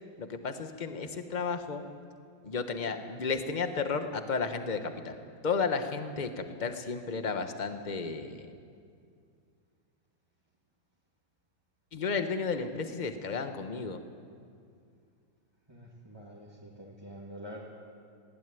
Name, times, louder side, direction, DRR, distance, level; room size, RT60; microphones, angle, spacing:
voice 1, 0.2-1.9 2.4-5.2 5.4-8.5 11.9-14.0, left 5 dB, 30° left, 7 dB, 1.1 m, -33 dB
voice 2, 15.7-17.6, equal, 10° right, -5 dB, 2.2 m, -46 dB
20.0 x 16.0 x 9.3 m, 2.3 s
omnidirectional pair, 2.2 m